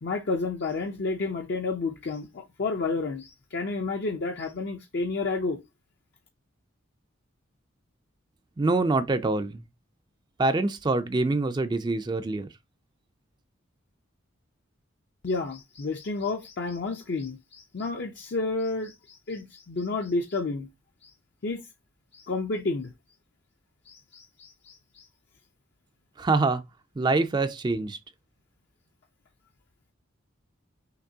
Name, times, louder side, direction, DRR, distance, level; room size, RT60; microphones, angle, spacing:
voice 1, 0.0-5.6 15.2-20.7 21.0-21.1 21.4-21.6 22.1-22.9 23.9-25.1, left 3 dB, 55° left, 0.5 m, -31 dB
voice 2, 8.6-9.6 10.4-12.5 26.2-26.6 27.0-28.0, right 3 dB, 20° right, 0.3 m, -25 dB
5.9 x 3.0 x 2.7 m
head